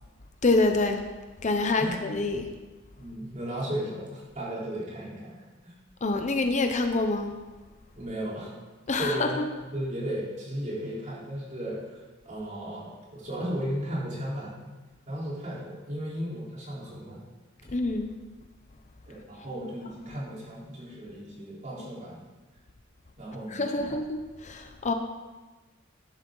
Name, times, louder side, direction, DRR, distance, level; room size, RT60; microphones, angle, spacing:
voice 1, 0.4-1.0 1.4-2.5 6.0-7.3 8.9-9.3 17.7-18.1 23.5-24.9, left 3 dB, 35° left, 6 dB, 0.7 m, -26 dB
voice 2, 3.0-5.7 8.0-8.5 9.0-9.4 9.7-14.5 15.1-17.2 19.1-22.2 23.2-24.0, right 1 dB, 40° right, -6 dB, 3.9 m, -35 dB
12.5 x 11.0 x 3.9 m, 1.2 s
head